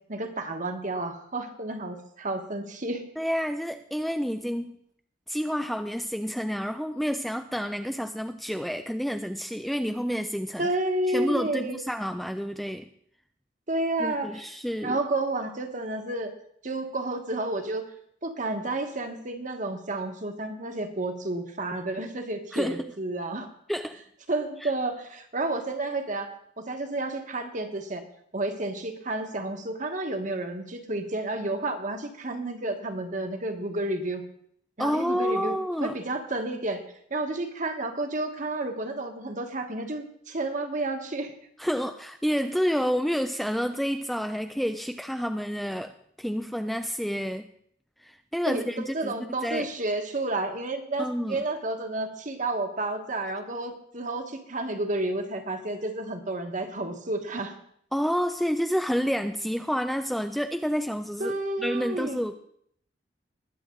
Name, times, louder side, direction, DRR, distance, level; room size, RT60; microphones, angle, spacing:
voice 1, 0.1-3.0 10.6-11.8 13.7-14.5 14.8-16.3 16.6-17.9 18.2-23.5 24.3-26.3 26.6-28.0 28.3-34.2 34.8-36.8 37.1-41.3 48.5-48.6 48.9-57.5 61.2-62.2, right 2 dB, 45° right, 5 dB, 1.4 m, -31 dB
voice 2, 3.2-4.8 5.3-10.7 11.1-12.9 14.0-15.0 22.5-22.9 23.7-24.0 24.6-24.7 34.8-36.0 41.6-47.5 48.0-49.1 49.4-49.7 51.0-51.5 57.9-62.3, equal, ahead, 7 dB, 0.3 m, -29 dB
20.5 x 7.7 x 3.9 m, 0.67 s
head